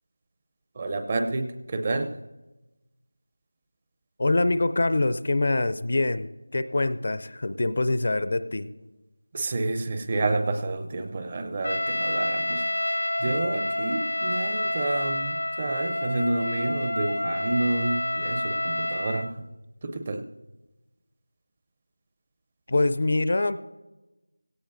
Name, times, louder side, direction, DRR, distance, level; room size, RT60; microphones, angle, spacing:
voice 1, 0.7-2.2 9.3-19.5 19.8-20.3, right 2 dB, 25° right, 7 dB, 0.6 m, -29 dB
voice 2, 4.2-8.7 22.7-23.6, left 2 dB, 45° left, 13 dB, 0.5 m, -24 dB
Trumpet, 11.6-19.3, left 1 dB, 90° left, 1.1 m, -28 dB
17.0 x 16.0 x 2.6 m, 1.1 s
figure-of-eight pair, 170°, 0 cm